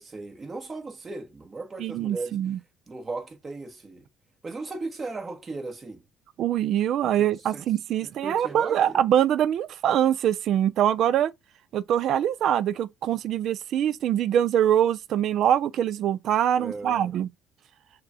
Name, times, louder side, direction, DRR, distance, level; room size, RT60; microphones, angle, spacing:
voice 1, 0.0-2.4 2.9-4.0 4.4-6.0 7.2-7.6 8.0-9.0 16.6-17.1, right 3 dB, 25° right, 1.4 m, -37 dB
voice 2, 1.8-2.6 6.4-11.3 11.7-17.3, right 10 dB, 60° right, 0.4 m, -24 dB
6.6 x 2.3 x 2.6 m
cardioid pair, 110°, 0 cm